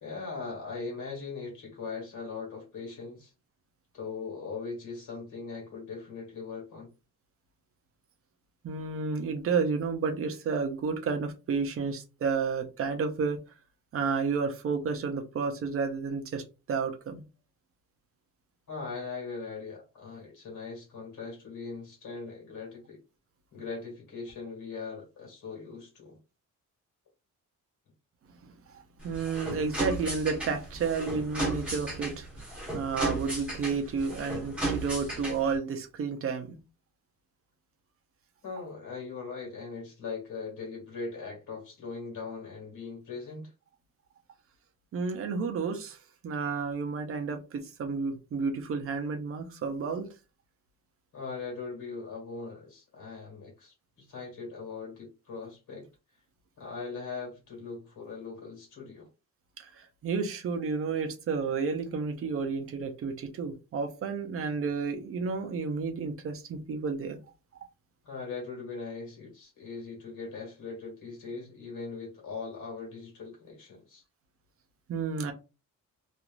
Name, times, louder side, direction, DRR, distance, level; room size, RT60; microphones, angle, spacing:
voice 1, 0.0-3.3 3.9-6.9 18.7-23.0 23.5-26.2 38.4-43.5 51.1-55.9 56.6-59.1 68.0-74.0, left 4 dB, 70° left, 1.6 m, -40 dB
voice 2, 8.6-13.4 13.9-17.2 28.4-36.6 44.9-46.0 46.2-50.1 59.6-67.2 74.9-75.3, right 5 dB, 45° right, 0.5 m, -31 dB
sound 1, 29.0-35.6, right 2 dB, 5° right, 1.1 m, -34 dB
3.0 x 2.5 x 2.4 m
wide cardioid pair, 175°, 32 cm